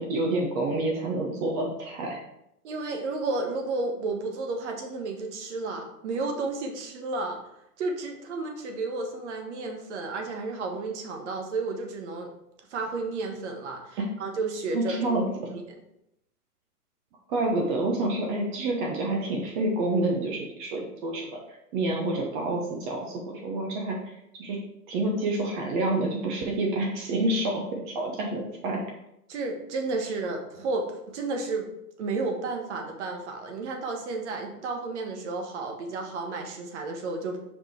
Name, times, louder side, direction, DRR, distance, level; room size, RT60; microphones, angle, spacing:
voice 1, 0.0-2.2 14.7-15.2 17.3-21.4 21.7-24.1 24.4-24.6 24.9-28.8, right 2 dB, 30° right, 0 dB, 1.0 m, -28 dB
voice 2, 2.6-7.4 7.8-12.3 12.7-15.1 15.5-15.6 29.3-31.7 32.0-37.5, right 3 dB, 50° right, 3 dB, 1.3 m, -32 dB
6.0 x 4.9 x 3.2 m, 0.82 s
hypercardioid pair, 125°, 47 cm